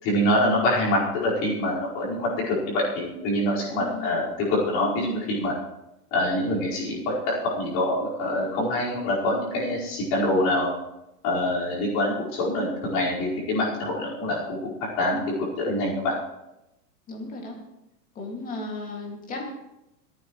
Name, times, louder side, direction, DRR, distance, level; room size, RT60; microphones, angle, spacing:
voice 1, 0.0-5.5 6.1-10.7 11.2-14.7 15.0-16.1, left 1 dB, 35° left, -5 dB, 4.9 m, -25 dB
voice 2, 3.8-4.2 17.1-17.6 18.2-19.4, left 3 dB, 15° left, 0 dB, 2.2 m, -35 dB
27.0 x 9.3 x 3.2 m, 0.92 s
supercardioid pair, 170°, 49 cm